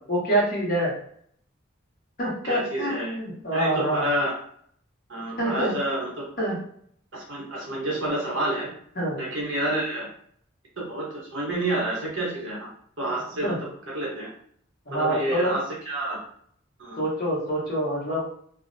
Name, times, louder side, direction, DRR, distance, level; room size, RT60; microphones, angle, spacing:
voice 1, 0.1-0.9 2.2-4.1 5.4-5.8 6.4-6.6 9.0-9.2 13.4-13.6 14.9-15.6 17.0-18.3, right 1 dB, 45° left, -4 dB, 0.9 m, -26 dB
voice 2, 2.4-3.2 3.5-4.3 5.1-6.2 7.1-8.7 9.2-10.1 10.8-12.7 13.0-13.5 13.9-14.3 14.9-16.2 16.8-17.0, right 1 dB, 65° right, -3 dB, 0.9 m, -29 dB
2.4 x 2.0 x 2.5 m, 0.64 s
head